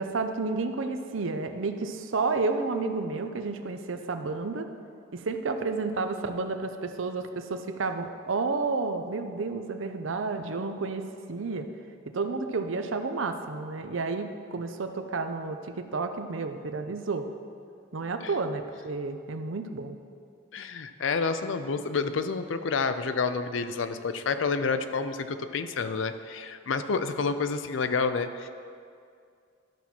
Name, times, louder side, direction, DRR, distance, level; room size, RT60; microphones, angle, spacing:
voice 1, 0.0-4.7 5.1-11.7 12.1-17.3 17.9-20.0, right 3 dB, 80° right, 7 dB, 0.6 m, -31 dB
voice 2, 20.5-28.5, left 4 dB, 70° left, 10 dB, 0.5 m, -29 dB
12.0 x 4.2 x 6.0 m, 2.3 s
head